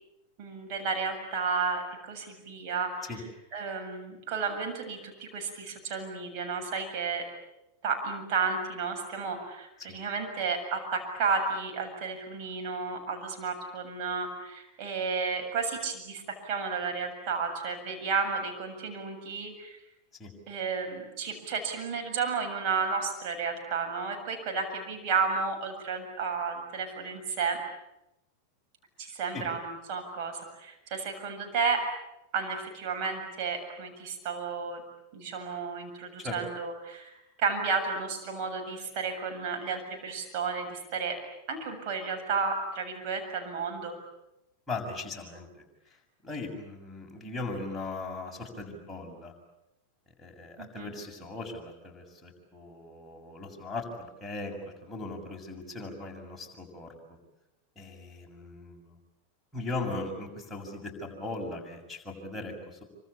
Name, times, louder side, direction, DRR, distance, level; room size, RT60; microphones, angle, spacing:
voice 1, 0.4-3.1 3.5-7.3 7.8-19.8 20.5-27.6 29.0-31.9 32.3-34.8 35.1-37.1 37.4-41.2 41.5-43.9 50.6-50.9, right 5 dB, 45° right, 3 dB, 7.4 m, -32 dB
voice 2, 44.7-45.5 45.9-49.3 50.2-56.9 57.8-59.0 59.5-62.8, left 2 dB, 5° left, -2 dB, 7.1 m, -39 dB
27.0 x 26.0 x 8.7 m, 0.87 s
figure-of-eight pair, 90°, 0 cm